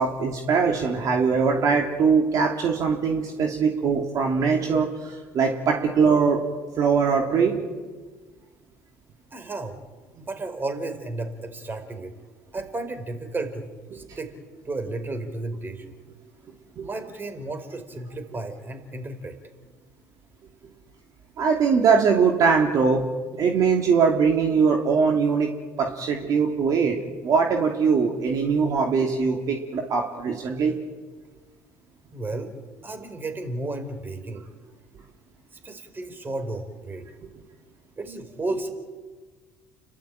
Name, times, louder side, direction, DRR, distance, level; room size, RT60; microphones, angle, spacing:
voice 1, 0.0-6.4 6.8-7.6 16.8-16.9 21.4-23.0 23.3-25.5 25.8-27.0 27.2-30.7, right 5 dB, 55° right, 1 dB, 2.8 m, -21 dB
voice 2, 9.3-9.8 10.1-12.1 12.5-14.3 14.6-16.0 16.8-19.4 32.1-32.5 32.8-34.5 35.6-37.1 38.0-38.7, right 2 dB, 30° right, 7 dB, 4.5 m, -33 dB
30.0 x 12.5 x 9.1 m, 1.4 s
hypercardioid pair, 65°, 7 cm